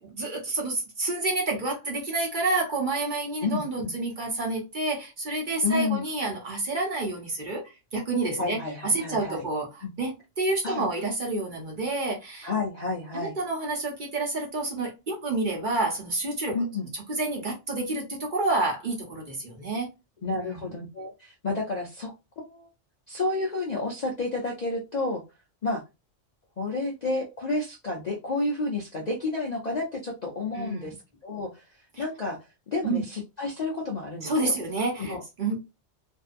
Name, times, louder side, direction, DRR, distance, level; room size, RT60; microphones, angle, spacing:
voice 1, 0.0-7.6 7.9-8.6 8.8-12.5 13.1-16.6 17.1-19.9 20.4-20.7 30.5-30.9 32.8-33.0 34.2-35.5, right 2 dB, 45° right, 0.8 m, -29 dB
voice 2, 3.4-3.9 5.6-6.0 8.4-9.5 9.8-9.9 10.6-10.9 12.4-13.4 16.5-16.9 20.2-22.7 23.1-25.2 25.6-25.8 26.6-30.9 31.2-32.4 32.7-34.6 35.0-35.2, left 3 dB, 50° left, 0.5 m, -30 dB
2.6 x 2.2 x 2.5 m
omnidirectional pair, 1.3 m